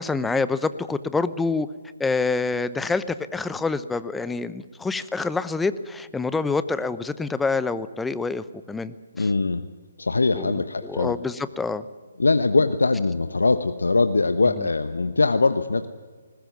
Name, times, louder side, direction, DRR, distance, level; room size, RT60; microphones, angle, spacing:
voice 1, 0.0-1.7 2.0-9.3 10.3-11.8, left 4 dB, 5° left, 14 dB, 0.8 m, -27 dB
voice 2, 9.2-9.6 10.0-11.1 12.2-15.9, left 3 dB, 75° left, 11 dB, 1.0 m, -22 dB
20.5 x 20.5 x 9.4 m, 1.4 s
figure-of-eight pair, 140°, 0 cm